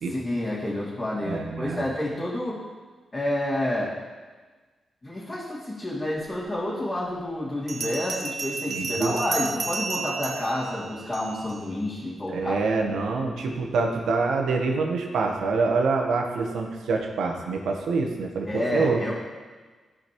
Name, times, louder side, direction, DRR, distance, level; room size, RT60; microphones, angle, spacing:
voice 1, 0.1-2.6 3.1-4.0 5.0-12.6 18.5-19.1, left 1 dB, 25° left, -9 dB, 2.4 m, -29 dB
voice 2, 1.2-1.8 8.7-9.1 12.3-19.0, right 4 dB, 80° right, 2 dB, 1.1 m, -26 dB
Bell, 6.5-6.6 7.7-11.6, right 4 dB, 60° right, 1.0 m, -32 dB
14.0 x 5.0 x 3.0 m, 1.4 s
supercardioid pair, 55°, 0 cm